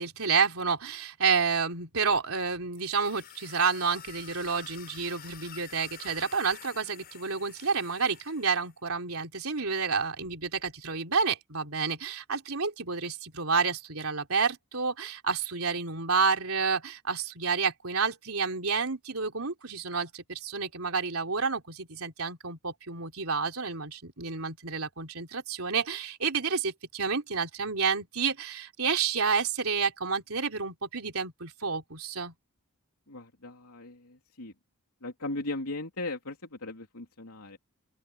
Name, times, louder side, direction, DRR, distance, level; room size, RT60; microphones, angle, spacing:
voice 1, 0.0-32.3, right 5 dB, 70° right, 3.8 m, -30 dB
sound 1, 2.8-8.7, left 9 dB, 45° left, 6.4 m, -49 dB
voice 2, 33.1-34.5 35.0-37.6, left 2 dB, 85° left, 3.1 m, -38 dB
open air
head